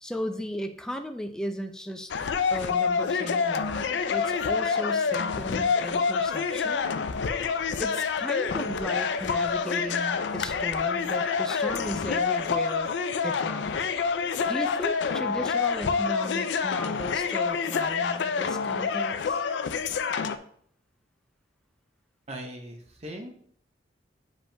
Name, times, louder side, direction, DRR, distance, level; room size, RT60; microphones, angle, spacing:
voice 1, 0.0-2.1 2.5-6.9 7.8-12.9 13.2-19.4, equal, 5° left, 5 dB, 0.4 m, -36 dB
sound 1, 2.1-20.4, left 5 dB, 70° left, 0.4 m, -27 dB
voice 2, 22.3-23.3, equal, 35° right, 3 dB, 0.6 m, -39 dB
8.6 x 5.2 x 2.2 m, 0.62 s
head